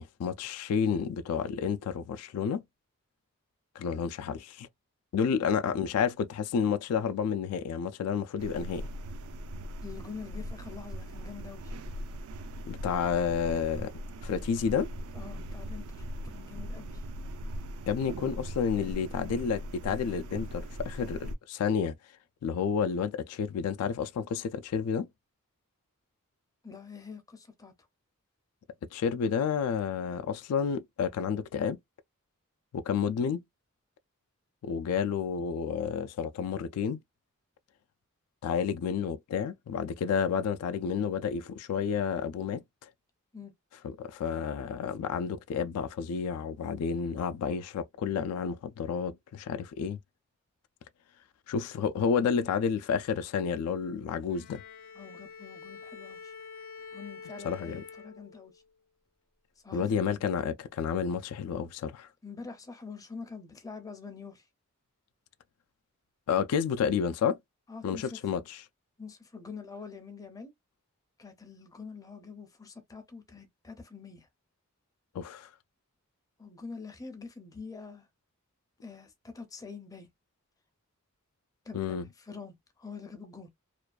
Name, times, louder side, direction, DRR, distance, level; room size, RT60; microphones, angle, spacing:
voice 1, 0.0-2.6 3.8-4.7 5.1-8.9 12.7-13.9 14.2-14.9 17.9-21.9 22.4-25.1 28.9-31.8 32.7-33.4 34.6-37.0 38.4-42.9 43.8-50.0 51.5-54.6 57.4-57.8 59.7-62.1 66.3-67.4 67.8-68.6 75.1-75.5 81.7-82.1, left 7 dB, 90° left, 0.3 m, -30 dB
sound 1, 8.4-21.4, equal, 70° right, 0.3 m, -40 dB
voice 2, 9.8-11.7 15.1-17.0 26.6-27.7 43.3-43.5 54.9-56.3 56.9-58.6 59.6-60.2 62.2-64.5 67.7-68.2 69.0-70.5 71.2-74.3 76.4-78.1 78.8-80.1 81.7-83.5, left 5 dB, 15° left, 0.5 m, -45 dB
Bowed string instrument, 54.3-58.7, left 5 dB, 60° left, 0.7 m, -47 dB
2.4 x 2.2 x 2.2 m
head